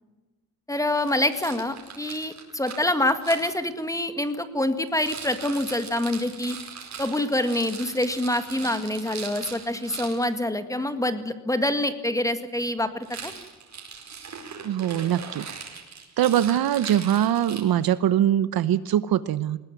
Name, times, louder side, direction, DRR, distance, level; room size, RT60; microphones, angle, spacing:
voice 1, 0.7-6.6 7.0-13.3, left 1 dB, 10° left, 10 dB, 1.9 m, -26 dB
Rattle, 0.9-3.5 4.9-10.3 13.0-18.0, right 6 dB, 40° right, 4.8 m, -40 dB
voice 2, 14.6-15.4 16.2-19.6, right 11 dB, 60° right, 15 dB, 1.0 m, -22 dB
20.0 x 19.0 x 9.2 m, 1.2 s
cardioid pair, 125°, 41 cm